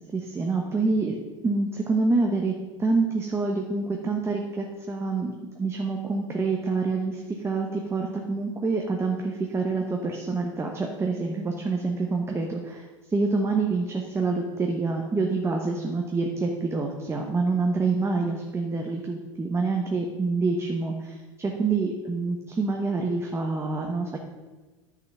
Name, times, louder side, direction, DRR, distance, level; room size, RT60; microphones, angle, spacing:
voice 1, 0.1-1.2 1.4-5.3 5.6-12.8 13.1-24.2, right 3 dB, 15° right, 1 dB, 1.1 m, -27 dB
9.5 x 5.9 x 6.2 m, 1.3 s
hypercardioid pair, 85°, 16 cm